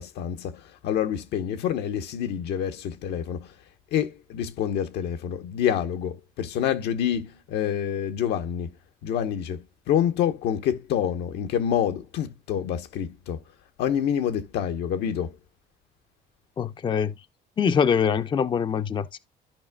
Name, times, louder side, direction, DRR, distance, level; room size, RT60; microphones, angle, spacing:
voice 1, 0.0-3.5 3.9-8.7 9.0-13.4 13.8-15.3, left 9 dB, 80° left, 0.9 m, -27 dB
voice 2, 16.6-17.1 17.6-19.2, left 7 dB, 30° left, 0.5 m, -24 dB
13.5 x 5.2 x 2.2 m
cardioid pair, 110°, 17 cm